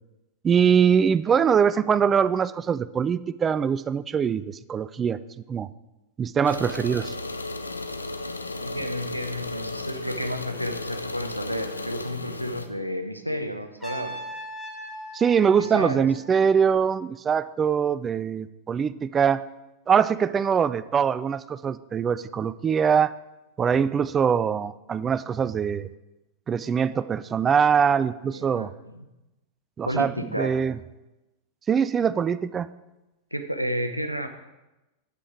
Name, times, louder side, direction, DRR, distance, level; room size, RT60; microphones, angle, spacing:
voice 1, 0.4-5.2 5.5-5.7 6.2-7.1 15.1-19.4 19.9-23.1 23.6-25.9 26.5-28.7 29.8-30.7 31.7-32.7, right 7 dB, 20° right, 15 dB, 0.3 m, -23 dB
sound 1, 6.4-12.7, left 2 dB, 80° left, 0.5 m, -34 dB
voice 2, 8.6-14.2 15.6-16.1 28.3-29.1 29.8-30.5 33.3-34.3, equal, 90° right, 7 dB, 0.7 m, -31 dB
Trumpet, 13.8-16.8, right 2 dB, ahead, 2.1 m, -39 dB
8.5 x 7.5 x 4.9 m, 1.0 s
figure-of-eight pair, 90°, 0 cm